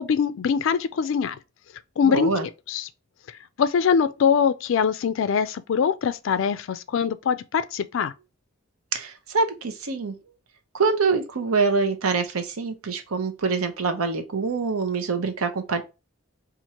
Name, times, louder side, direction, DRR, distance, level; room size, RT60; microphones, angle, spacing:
voice 1, 0.0-1.4 2.0-2.9 3.6-8.1, left 7 dB, 60° left, 0.3 m, -23 dB
voice 2, 2.0-2.4 8.9-10.1 10.7-15.8, right 4 dB, 90° right, 0.7 m, -25 dB
4.3 x 2.5 x 2.9 m
head